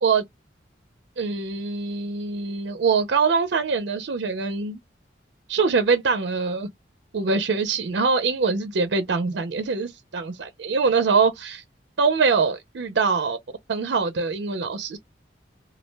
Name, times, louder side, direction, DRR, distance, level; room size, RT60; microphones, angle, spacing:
voice 1, 1.2-4.8 5.5-6.7 7.1-11.6 12.0-13.4 13.7-15.0, right 5 dB, 75° right, 0.4 m, -23 dB
2.2 x 2.1 x 3.1 m
head